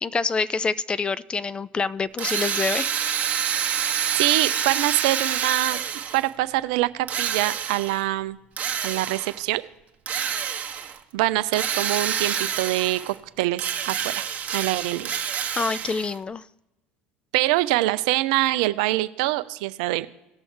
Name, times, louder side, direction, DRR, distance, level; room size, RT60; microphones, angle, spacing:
voice 1, 0.0-2.9 15.6-16.4, left 4 dB, 25° left, 18 dB, 0.4 m, -26 dB
Drill, 2.2-6.3 7.1-8.0 8.6-9.4 10.1-11.0 11.5-13.2 13.5-16.2, right 8 dB, 40° right, 1.2 m, -27 dB
voice 2, 3.6-5.8 6.1-8.4 8.8-9.6 11.1-14.2 14.5-15.1 17.3-20.1, right 17 dB, 70° right, 14 dB, 0.5 m, -24 dB
18.5 x 6.2 x 3.3 m, 0.96 s
hypercardioid pair, 75°, 4 cm